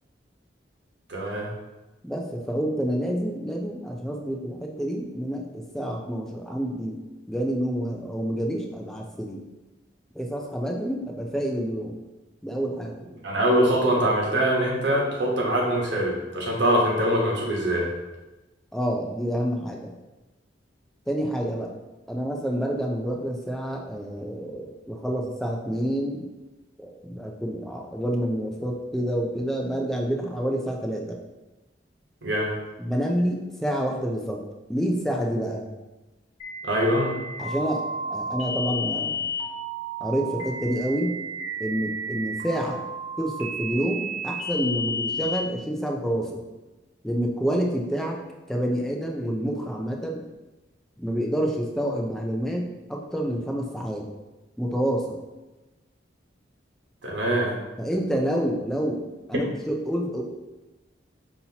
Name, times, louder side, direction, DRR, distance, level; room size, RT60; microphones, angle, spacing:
voice 1, 1.1-1.5 13.2-17.9 32.2-32.5 36.6-37.1 57.0-57.5, right 1 dB, 75° right, -2 dB, 1.1 m, -23 dB
voice 2, 2.0-7.0 7.3-9.4 10.1-12.0 12.4-12.9 18.7-19.9 21.1-21.7 22.1-26.3 26.8-31.2 32.8-34.4 34.7-35.6 37.4-39.2 40.0-41.1 41.6-42.8 43.2-46.4 47.0-48.2 48.5-50.2 51.0-54.1 54.6-55.2 57.8-59.0 59.3-60.2, equal, ahead, 0 dB, 0.4 m, -28 dB
sound 1, 36.4-45.4, equal, 35° left, 0.8 m, -32 dB
5.4 x 2.8 x 2.8 m, 1.1 s
head